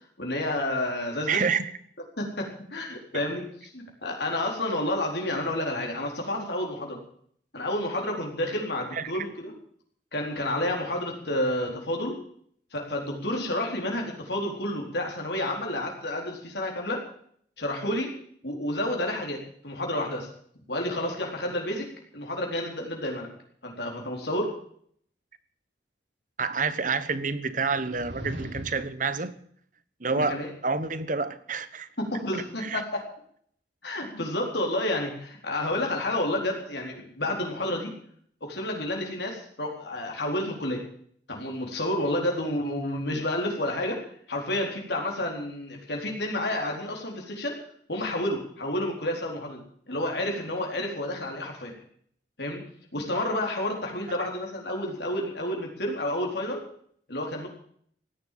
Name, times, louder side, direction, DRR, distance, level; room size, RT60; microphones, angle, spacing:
voice 1, 0.2-1.4 2.2-3.5 3.7-7.0 7.5-9.5 10.1-12.1 12.7-17.0 17.6-18.1 18.4-20.3 20.7-21.9 22.1-23.3 23.6-24.5 30.1-30.5 32.0-33.0 33.8-37.9 38.4-40.8 41.3-44.0 44.3-47.6 47.9-51.7 52.4-52.6 52.9-56.6 57.1-57.5, left 1 dB, 65° left, 0 dB, 4.2 m, -30 dB
voice 2, 1.3-1.6 3.1-3.2 8.9-9.2 26.4-29.4 30.0-31.9 32.3-32.8, right 4 dB, 45° right, 14 dB, 1.3 m, -28 dB
sound 1, 27.8-29.0, equal, 85° right, 3.3 m, -38 dB
16.5 x 11.5 x 7.6 m, 0.62 s
head